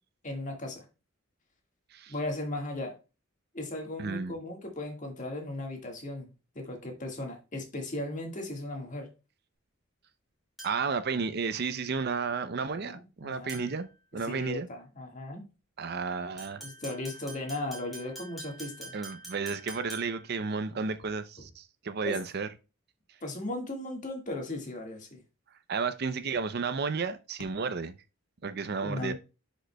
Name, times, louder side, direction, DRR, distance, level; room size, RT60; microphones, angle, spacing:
voice 1, 0.2-0.8 2.1-2.9 3.5-9.1 12.6-13.7 14.3-15.5 16.6-19.0 22.0-22.2 23.2-25.2 28.8-29.1, left 1 dB, 40° left, 1.7 m, -37 dB
voice 2, 4.0-4.3 10.6-13.9 14.1-14.7 15.8-16.7 18.9-22.5 25.7-28.0 28.4-29.1, right 5 dB, 50° right, 0.5 m, -32 dB
sound 1, 10.6-11.0 13.5-13.9 16.4-20.3, right 1 dB, ahead, 2.6 m, -46 dB
10.5 x 5.1 x 2.2 m
head